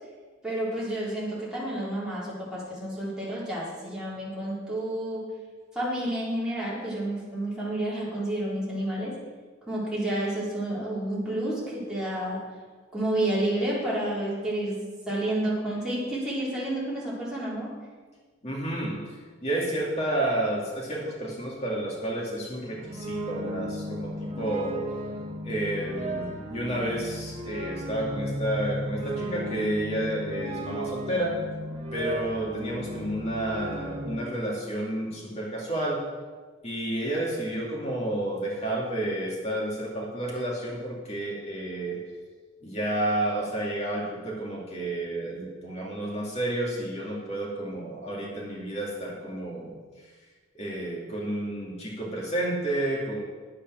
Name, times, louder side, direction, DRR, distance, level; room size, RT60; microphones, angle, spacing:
voice 1, 0.4-5.2 5.8-9.1 9.7-12.4 12.9-14.8 15.1-17.7, right 1 dB, 5° right, -8 dB, 3.7 m, -30 dB
voice 2, 18.4-19.0 19.4-24.8 25.4-31.4 31.9-36.0 36.6-42.0 42.6-49.7 50.5-53.2, right 1 dB, 35° left, -3 dB, 2.3 m, -30 dB
sound 1, 22.4-34.2, right 1 dB, 35° right, 1.2 m, -35 dB
9.8 x 8.5 x 6.2 m, 1.4 s
head